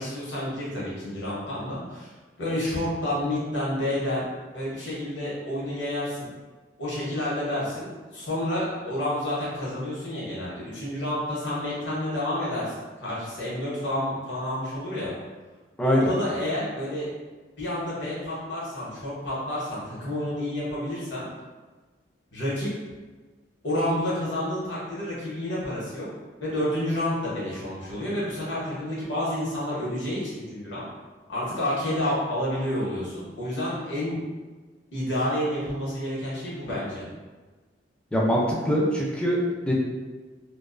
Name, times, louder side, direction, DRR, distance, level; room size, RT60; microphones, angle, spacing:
voice 1, 0.0-2.1 2.4-4.3 4.5-6.3 6.8-15.1 15.8-17.1 17.6-21.3 22.3-22.7 23.6-26.1 26.4-30.8 31.3-34.2 34.9-37.0, left 1 dB, 80° left, -7 dB, 1.0 m, -29 dB
voice 2, 15.8-16.1 38.1-39.4 39.6-39.7, equal, 5° left, -4 dB, 0.4 m, -23 dB
2.4 x 2.2 x 2.4 m, 1.3 s
head